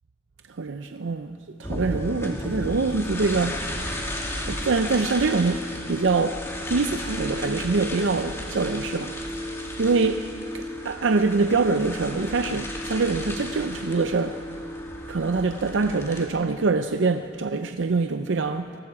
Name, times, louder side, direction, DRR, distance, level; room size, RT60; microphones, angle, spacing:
voice 1, 0.5-3.7 4.4-9.2 9.8-10.3 10.5-14.4 15.1-18.8, right 4 dB, 85° right, 0.6 m, -24 dB
sound 1, 1.6-16.3, left 1 dB, 15° left, 2.5 m, -33 dB
29.0 x 19.5 x 4.8 m
head